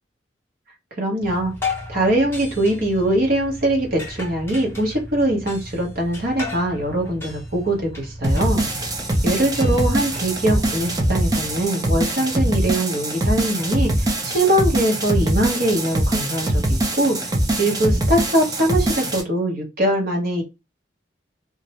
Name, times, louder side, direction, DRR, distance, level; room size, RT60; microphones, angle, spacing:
voice 1, 1.0-1.5 1.9-8.7 9.2-17.3 17.6-20.4, right 1 dB, 55° right, 0 dB, 0.9 m, -22 dB
sound 1, 1.2-11.7, left 2 dB, 15° left, 0.8 m, -35 dB
sound 2, 8.2-19.2, right 1 dB, 20° right, 0.5 m, -22 dB
2.5 x 2.0 x 2.8 m, 0.25 s
head